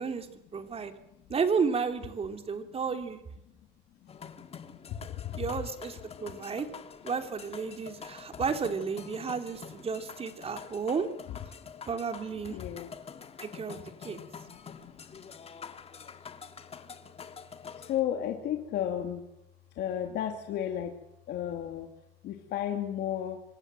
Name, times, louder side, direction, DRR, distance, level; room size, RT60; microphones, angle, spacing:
voice 1, 0.0-0.9 1.3-3.2 5.4-6.7 7.0-11.1 11.9-12.6 13.4-14.2, right 5 dB, 35° right, 6 dB, 3.3 m, -32 dB
voice 2, 0.7-1.3 2.7-2.8 3.5-4.3 4.9-5.5 10.6-10.7 11.6-11.8 12.5-12.9 13.3-13.4 14.4-15.2 17.7-19.3 19.7-21.0 21.3-21.9 22.2-23.4, left 10 dB, 75° left, 4 dB, 2.7 m, -35 dB
sound 1, 4.1-18.0, left 6 dB, 35° left, 2.1 m, -46 dB
26.0 x 18.5 x 7.7 m, 0.88 s
cardioid pair, 110°, 17 cm